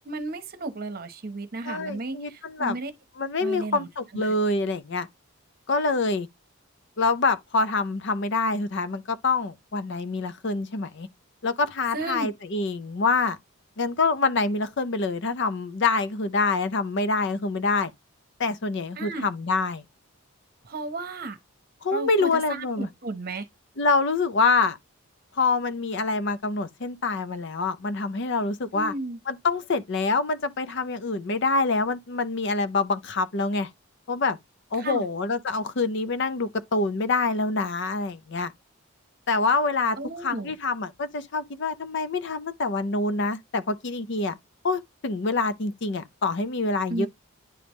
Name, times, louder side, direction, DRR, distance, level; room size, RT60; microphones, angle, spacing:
voice 1, 0.0-2.9 3.4-3.9 4.3-4.4 11.9-12.3 19.0-19.3 20.6-21.4 21.9-23.4 28.7-29.2 34.8-35.1 40.0-40.5 46.9-47.1, right 2 dB, 45° right, 0.9 m, -34 dB
voice 2, 1.7-2.8 3.2-5.1 5.7-6.3 7.0-11.1 11.4-13.4 13.8-17.9 18.4-19.8 21.8-22.9 23.8-24.8 25.4-28.9 29.3-33.7 34.1-34.4 34.7-38.5 39.3-40.0 40.2-44.4 44.6-47.1, left 3 dB, 55° left, 0.5 m, -26 dB
10.0 x 3.4 x 3.0 m
head